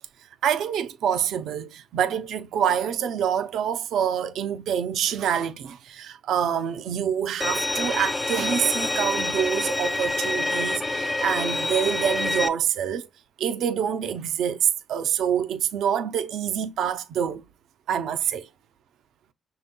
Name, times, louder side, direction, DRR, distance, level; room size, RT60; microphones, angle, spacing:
voice 1, 0.4-13.1 13.4-17.4 17.9-18.5, right 8 dB, 75° right, 0.5 m, -26 dB
Bowed string instrument, 7.4-12.5, left 2 dB, 15° left, 0.4 m, -26 dB
5.8 x 3.9 x 2.2 m
cardioid pair, 90°, 0 cm